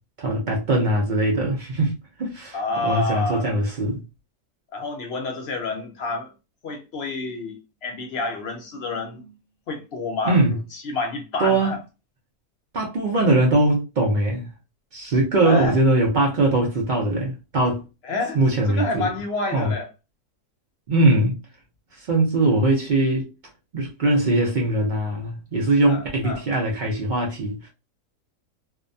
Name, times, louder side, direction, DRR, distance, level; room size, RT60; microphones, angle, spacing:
voice 1, 0.2-1.9 2.2-2.6 2.8-4.0 10.2-10.6 11.4-11.7 12.7-14.5 14.9-17.8 18.3-19.1 19.5-19.7 20.9-21.4 21.9-23.3 23.7-27.7, right 2 dB, 85° right, 0.4 m, -21 dB
voice 2, 2.5-3.6 4.7-6.3 6.6-9.3 9.7-11.8 15.4-15.8 18.0-18.4 18.7-19.9 25.9-26.4, left 3 dB, 65° left, 0.6 m, -29 dB
2.6 x 2.1 x 2.5 m
omnidirectional pair, 1.6 m